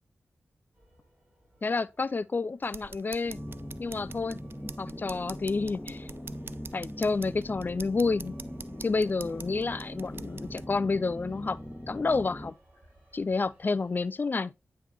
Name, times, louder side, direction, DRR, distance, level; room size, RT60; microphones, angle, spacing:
sound 1, 0.7-14.1, right 1 dB, 30° right, 3.7 m, -61 dB
voice 1, 1.6-3.4 3.8-4.4 4.8-6.1 6.7-8.3 8.8-11.6 11.9-12.5 13.1-14.5, left 4 dB, 40° left, 0.4 m, -29 dB
sound 2, 2.6-10.7, right 5 dB, 50° right, 0.3 m, -47 dB
sound 3, 3.2-12.5, equal, 10° left, 1.2 m, -41 dB
9.1 x 3.2 x 3.3 m
cardioid pair, 40°, 5 cm